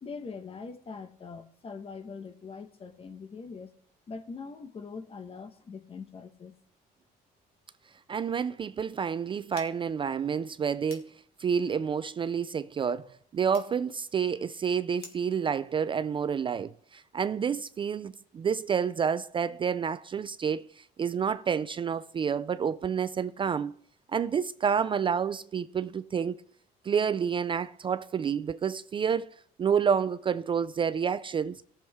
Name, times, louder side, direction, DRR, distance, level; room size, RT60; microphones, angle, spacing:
voice 1, 0.0-3.7 4.1-6.5, left 5 dB, 35° left, 1.1 m, -42 dB
voice 2, 8.1-11.1 11.4-13.1 13.3-23.7 24.1-26.4 26.8-29.3 29.6-31.6, right 7 dB, 30° right, 0.4 m, -29 dB
sound 1, 9.5-15.4, left 4 dB, 70° left, 2.5 m, -54 dB
18.0 x 7.1 x 3.5 m
cardioid pair, 110°, 17 cm